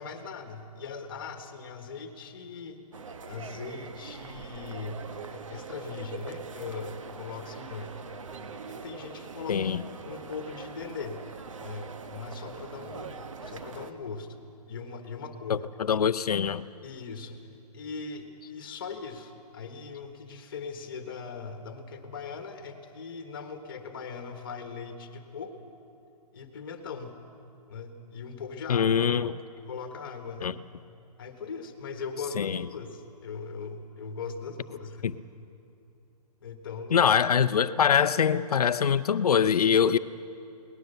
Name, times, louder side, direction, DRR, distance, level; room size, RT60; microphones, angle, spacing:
voice 1, 0.0-2.8 3.3-8.0 8.7-9.7 10.0-11.2 11.6-14.4 14.7-15.7 16.8-17.4 17.7-25.5 26.3-27.2 27.7-28.9 29.6-30.5 31.2-35.1 36.4-37.1, left 5 dB, 35° left, 1.5 m, -40 dB
sound 1, 2.9-13.9, right 5 dB, 50° right, 1.1 m, -42 dB
voice 2, 9.5-9.8 15.5-15.6 15.9-16.7 28.7-29.3 30.4-30.5 32.4-32.6 36.9-40.0, left 7 dB, 65° left, 0.7 m, -23 dB
20.5 x 19.0 x 6.7 m
hypercardioid pair, 175°, 21 cm